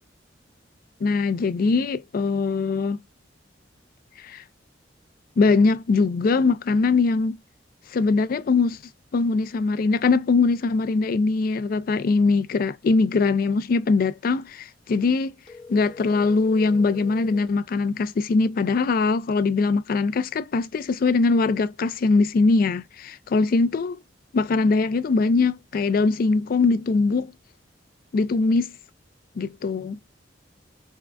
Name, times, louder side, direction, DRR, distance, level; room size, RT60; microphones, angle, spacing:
voice 1, 1.0-3.0 4.2-4.4 5.4-7.4 7.9-8.8 9.1-15.3 15.7-24.0 24.3-27.3 28.1-28.7 29.4-30.0, left 4 dB, 50° left, 0.3 m, -22 dB
sound 1, 15.4-17.5, left 3 dB, 30° left, 1.0 m, -44 dB
3.7 x 2.2 x 2.2 m
head